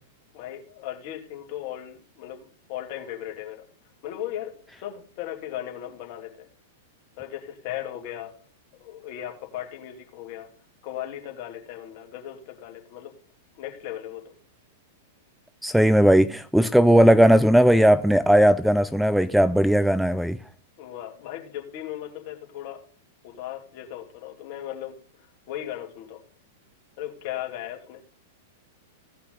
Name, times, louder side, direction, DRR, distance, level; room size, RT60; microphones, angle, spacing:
voice 1, 0.3-3.7 4.0-6.5 7.2-8.3 8.7-10.5 10.8-13.1 13.5-14.3 20.8-22.9 23.2-26.2 27.0-28.0, left 12 dB, 50° left, 2.6 m, -37 dB
voice 2, 15.6-20.4, equal, ahead, 0.5 m, -17 dB
17.0 x 5.7 x 3.8 m
hypercardioid pair, 105°, 0 cm